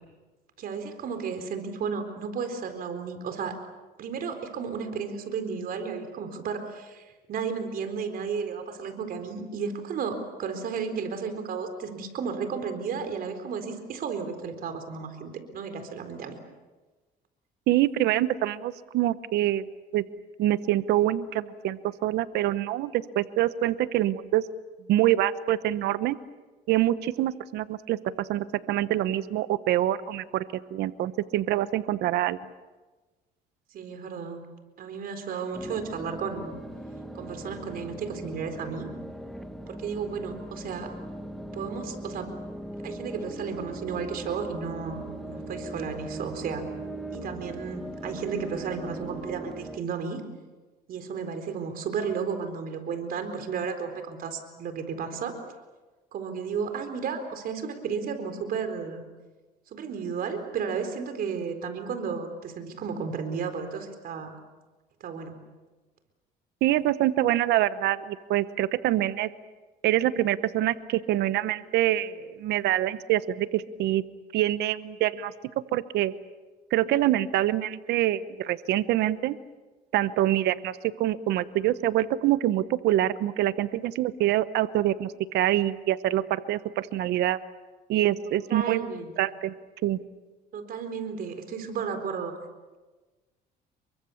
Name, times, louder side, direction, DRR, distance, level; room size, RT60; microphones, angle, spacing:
voice 1, 0.6-3.6 4.0-16.4 33.7-34.4 34.8-36.6 37.1-38.9 39.7-40.9 41.5-42.3 42.8-46.6 47.1-50.2 50.9-55.3 56.1-59.0 59.7-64.4 65.0-65.4 88.5-89.1 90.5-92.3, right 6 dB, 60° right, 7 dB, 4.2 m, -33 dB
voice 2, 17.7-19.6 19.9-20.0 20.4-24.5 24.9-26.2 26.7-30.4 30.7-32.4 66.6-69.3 69.8-74.0 74.3-75.3 75.7-76.1 76.7-79.4 79.9-87.4 87.9-88.8 89.2-89.5 89.8-90.0, right 13 dB, 80° right, 14 dB, 1.0 m, -25 dB
sound 1, 35.5-49.8, right 1 dB, ahead, 1.7 m, -39 dB
29.5 x 23.0 x 7.2 m, 1.2 s
cardioid pair, 110°, 17 cm